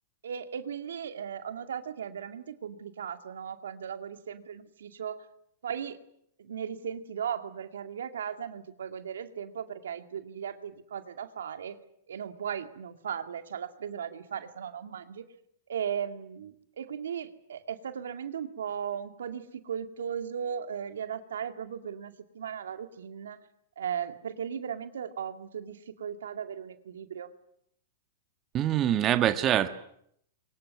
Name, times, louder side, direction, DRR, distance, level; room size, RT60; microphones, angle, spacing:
voice 1, 0.2-5.2 5.6-6.0 6.4-11.8 12.1-15.2 15.7-23.4 23.8-27.3, right 8 dB, 80° right, 8 dB, 2.2 m, -37 dB
voice 2, 28.5-29.7, right 11 dB, 30° right, 10 dB, 1.4 m, -24 dB
24.0 x 21.0 x 9.7 m, 0.72 s
hypercardioid pair, 120°, 0 cm